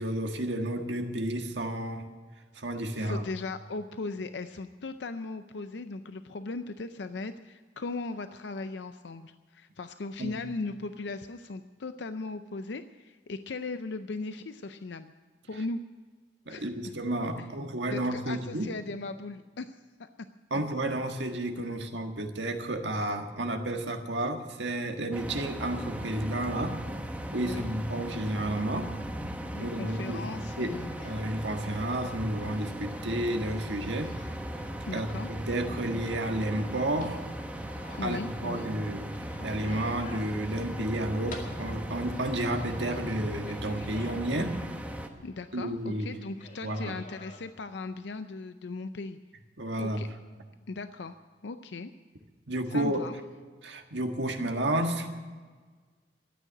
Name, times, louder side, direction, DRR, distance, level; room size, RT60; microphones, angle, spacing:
voice 1, 0.0-2.1 2.5-3.2 10.2-10.3 16.4-18.7 20.5-26.8 27.3-28.9 29.6-34.2 34.7-37.2 38.0-44.6 45.5-46.2 46.6-47.0 49.6-50.1 52.5-53.1 53.6-55.1, right 1 dB, 85° right, 5 dB, 1.6 m, -31 dB
voice 2, 2.9-15.1 15.5-15.8 16.5-16.7 17.9-20.1 27.4-27.7 29.5-30.9 34.8-35.3 38.0-38.7 45.2-49.2 49.8-50.1 50.7-51.1 51.4-51.9 52.7-53.2, left 3 dB, 75° left, 10 dB, 0.5 m, -38 dB
sound 1, 25.1-45.1, equal, 10° right, 1.1 m, -38 dB
sound 2, 30.9-47.5, left 2 dB, 45° left, 2.2 m, -52 dB
13.0 x 9.2 x 10.0 m, 1.5 s
head